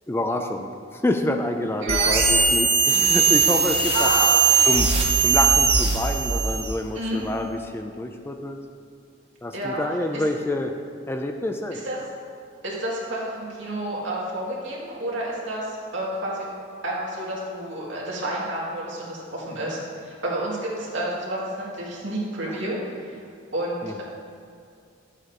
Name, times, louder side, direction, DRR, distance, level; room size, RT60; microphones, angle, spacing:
voice 1, 0.1-4.1 4.6-8.6 9.4-10.8 11.1-11.8 22.5-22.6 23.8-24.0, left 1 dB, 10° left, 5 dB, 0.3 m, -27 dB
voice 2, 1.8-2.4 3.9-4.7 6.9-7.2 9.5-9.8 10.1-10.2 11.7-12.0 12.6-16.5 16.8-22.8 23.1-23.2 23.5-24.0, right 1 dB, 75° right, -5 dB, 2.3 m, -30 dB
sound 1, 1.9-6.8, right 5 dB, 30° right, 0.8 m, -19 dB
11.5 x 7.9 x 2.9 m, 2.3 s
head